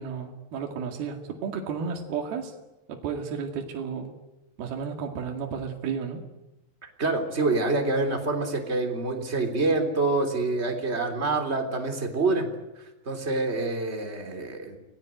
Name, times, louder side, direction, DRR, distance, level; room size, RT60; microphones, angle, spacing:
voice 1, 0.0-2.5 2.9-4.1 4.6-6.3, right 6 dB, 70° right, 2 dB, 4.1 m, -33 dB
voice 2, 7.0-12.5 13.0-14.8, right 3 dB, 15° right, 5 dB, 3.4 m, -26 dB
29.5 x 19.0 x 9.2 m, 1.0 s
omnidirectional pair, 4.8 m